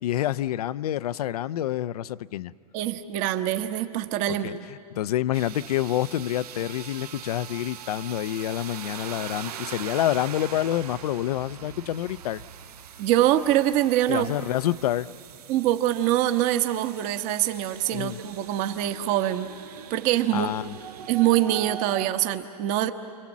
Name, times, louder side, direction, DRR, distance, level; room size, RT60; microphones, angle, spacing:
voice 1, 0.0-2.5 4.3-12.4 14.1-15.1 17.9-18.2 20.3-20.7, left 12 dB, 75° left, 16 dB, 0.6 m, -28 dB
voice 2, 2.7-4.6 13.0-14.3 15.5-19.5 19.9-20.5 21.1-22.9, right 13 dB, 40° right, 8 dB, 1.2 m, -24 dB
sound 1, 5.3-22.1, right 9 dB, 85° right, 1.6 m, -42 dB
30.0 x 23.0 x 7.3 m, 2.4 s
hypercardioid pair, 135°, 19 cm